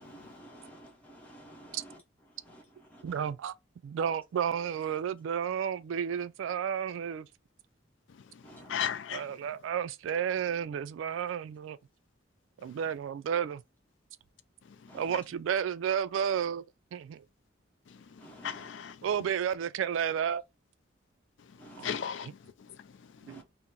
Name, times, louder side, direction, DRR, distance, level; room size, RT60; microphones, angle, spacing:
voice 1, 0.0-3.4 8.4-9.0 14.9-15.3 18.2-18.7 21.6-22.0 23.3-23.4, right 1 dB, 10° left, 0.8 m, -52 dB
voice 2, 3.0-3.5 3.8-7.3 9.1-11.8 12.6-13.6 14.9-16.6 16.9-17.2 19.0-20.4 21.8-21.9 23.3-23.4, right 8 dB, 90° right, 0.3 m, -32 dB
voice 3, 8.1-9.3 12.6-12.8 14.6-15.2 17.9-19.1 21.4-23.4, left 8 dB, 70° left, 0.4 m, -39 dB
2.8 x 2.1 x 3.7 m
head